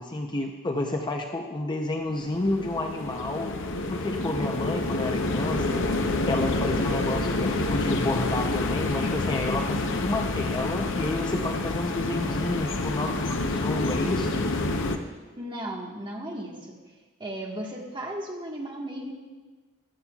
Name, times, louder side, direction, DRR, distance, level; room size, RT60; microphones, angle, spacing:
voice 1, 0.0-3.5 3.9-5.8 6.3-14.4, left 2 dB, 20° left, 3 dB, 0.6 m, -30 dB
sound 1, 2.1-15.0, left 2 dB, 60° left, 0.8 m, -28 dB
voice 2, 15.4-16.8 17.2-19.1, right 1 dB, 20° right, -1 dB, 1.4 m, -35 dB
15.0 x 11.5 x 2.3 m, 1.3 s
head